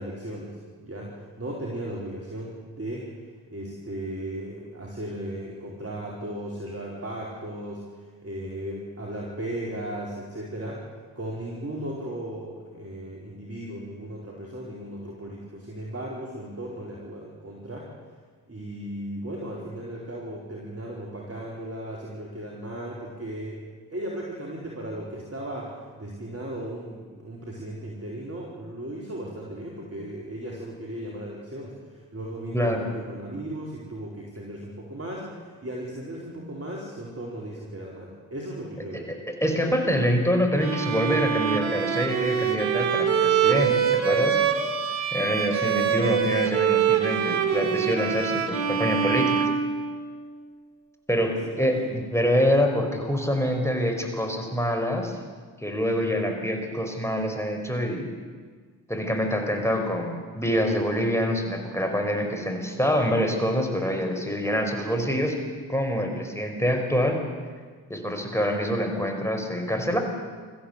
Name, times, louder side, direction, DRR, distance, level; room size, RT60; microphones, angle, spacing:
voice 1, 0.0-3.1 3.5-10.8 11.2-17.9 18.5-23.6 23.9-39.1 51.2-51.9, right 1 dB, 30° right, -3 dB, 4.6 m, -36 dB
voice 2, 32.5-32.8 39.1-44.4 45.1-49.5 51.1-55.2 55.6-58.1 58.9-65.4 65.7-67.2 67.9-70.0, equal, 5° left, 3 dB, 5.3 m, -25 dB
Bowed string instrument, 40.6-50.3, right 8 dB, 85° right, 1.6 m, -25 dB
22.0 x 14.5 x 8.3 m, 1.5 s
hypercardioid pair, 40°, 48 cm